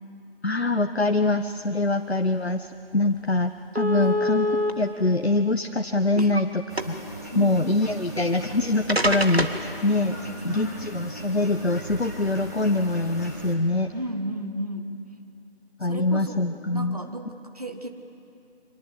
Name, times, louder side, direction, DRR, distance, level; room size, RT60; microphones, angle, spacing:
voice 1, 0.4-4.5 4.8-7.0 7.3-9.5 9.8-10.2 10.4-13.9 15.8-17.0, left 2 dB, 85° left, 6 dB, 1.2 m, -24 dB
sound 1, 2.7-2.8 3.1-3.2 3.8-4.7 5.6-6.4 6.7-7.1 8.3-8.4 8.9-9.7, equal, 75° right, 2.1 m, -25 dB
sound 2, 6.7-13.5, equal, 15° left, 1.8 m, -39 dB
voice 2, 7.3-7.8 10.1-10.9 13.9-15.0 15.8-17.9, right 1 dB, 40° right, 5 dB, 1.8 m, -34 dB
30.0 x 24.5 x 7.9 m, 2.8 s
figure-of-eight pair, 170°, 31 cm